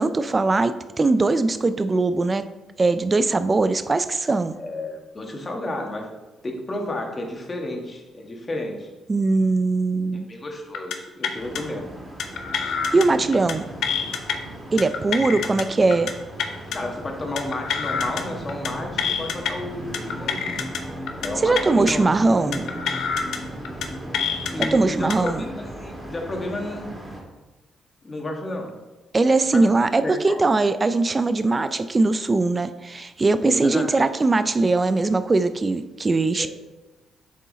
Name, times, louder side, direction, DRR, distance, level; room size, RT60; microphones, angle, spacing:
voice 1, 0.0-2.4 2.8-4.5 9.1-10.3 12.9-13.6 14.7-16.1 21.4-22.6 24.6-25.4 29.1-36.5, right 3 dB, 25° right, 11 dB, 0.3 m, -21 dB
voice 2, 4.5-6.1 6.4-8.9 10.3-11.9 16.7-20.6 21.2-22.1 24.5-26.9 28.0-28.7 29.4-29.7 30.0-30.4 31.6-31.7 33.4-34.1 36.4-36.5, left 2 dB, 30° left, 2 dB, 1.4 m, -32 dB
sound 1, 10.7-11.0 11.2-11.6 12.2-13.1 13.3-13.5 13.8-14.3 14.8-15.6 15.9-16.1 16.4-16.8 17.4-18.2 18.5-18.7 19.0-19.5 19.9-20.8 21.1-21.3 21.5-21.9 22.5-23.4 23.6-23.9 24.1-24.7 25.1-25.3, left 7 dB, 80° left, 0.7 m, -26 dB
sound 2, 11.3-27.2, right 1 dB, 5° right, 2.2 m, -36 dB
7.3 x 4.5 x 4.0 m, 1.1 s
cardioid pair, 90°, 0 cm